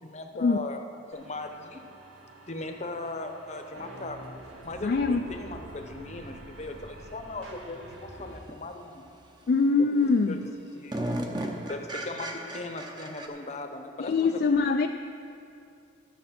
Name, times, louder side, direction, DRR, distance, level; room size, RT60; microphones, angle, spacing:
voice 1, 0.0-0.8 1.1-1.8 2.5-4.2 4.6-9.0 9.8-10.4 10.7-11.1 11.7-14.4, left 2 dB, 35° left, 5 dB, 0.8 m, -38 dB
sound 1, 1.1-8.4, right 1 dB, 75° right, 1.6 m, -46 dB
voice 2, 4.8-5.3 9.5-10.4 14.0-14.9, left 4 dB, 50° left, 5 dB, 0.3 m, -23 dB
sound 2, 5.6-5.7 8.5-8.6 9.1-9.5 10.0-10.1 10.3-13.3, right 1 dB, 20° right, 0.8 m, -35 dB
12.5 x 7.4 x 5.8 m, 2.5 s
head